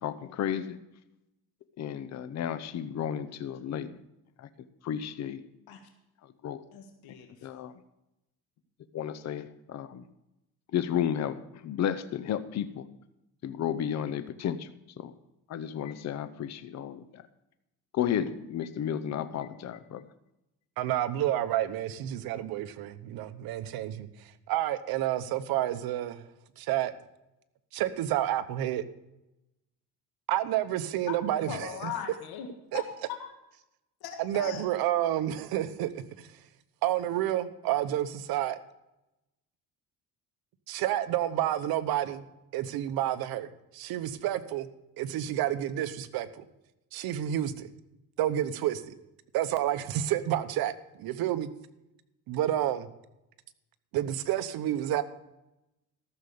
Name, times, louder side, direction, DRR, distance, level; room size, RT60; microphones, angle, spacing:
voice 1, 0.0-0.8 1.8-4.0 4.4-4.5 4.8-5.4 6.4-6.6 7.4-7.7 8.9-10.0 10.7-12.9 13.4-14.7 15.0-15.1 15.5-17.2 17.9-20.1, left 9 dB, 50° left, 0.8 m, -32 dB
voice 2, 6.7-7.5 31.1-31.2 31.5-32.5 32.7-32.8 33.2-33.3 34.0-34.6, left 9 dB, 85° left, 1.7 m, -39 dB
voice 3, 20.8-24.1 24.5-26.2 26.6-26.9 27.7-28.8 30.3-31.9 32.7-32.8 34.2-35.9 36.2-36.3 36.8-38.6 40.7-42.3 42.5-44.7 45.0-46.4 46.9-47.7 48.2-48.9 49.3-51.5 52.3-52.9 53.9-55.0, right 12 dB, 75° right, 1.0 m, -29 dB
14.0 x 6.7 x 6.8 m
cardioid pair, 125°, 36 cm